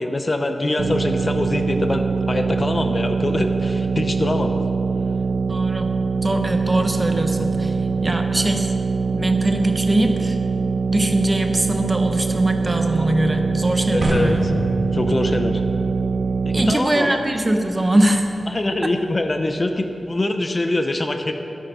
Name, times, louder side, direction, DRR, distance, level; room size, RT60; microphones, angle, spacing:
voice 1, 0.0-4.5 13.9-14.5 14.9-15.6 16.5-17.2 18.5-21.3, left 2 dB, 35° left, 6 dB, 0.7 m, -24 dB
sound 1, 0.8-16.7, right 5 dB, 70° right, 0.3 m, -23 dB
voice 2, 5.5-5.9 6.2-7.7 8.0-8.7 9.1-10.4 10.9-14.5 16.5-18.3, right 1 dB, 25° right, 5 dB, 1.0 m, -21 dB
sound 2, 14.0-20.1, right 1 dB, 50° right, 1.5 m, -31 dB
12.5 x 8.9 x 5.5 m, 2.7 s
wide cardioid pair, 95°, 0 cm